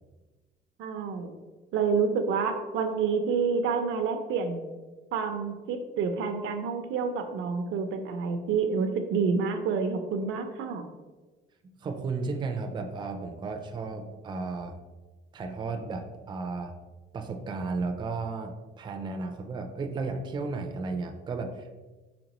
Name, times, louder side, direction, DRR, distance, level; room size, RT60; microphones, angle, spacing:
voice 1, 0.8-1.3 1.7-4.6 5.1-10.8, right 5 dB, 80° right, 6 dB, 0.6 m, -28 dB
voice 2, 11.6-14.7 15.3-16.7 17.1-21.7, right 3 dB, 25° right, 4 dB, 0.4 m, -34 dB
5.1 x 3.5 x 2.9 m, 1.2 s
cardioid pair, 135°, 20 cm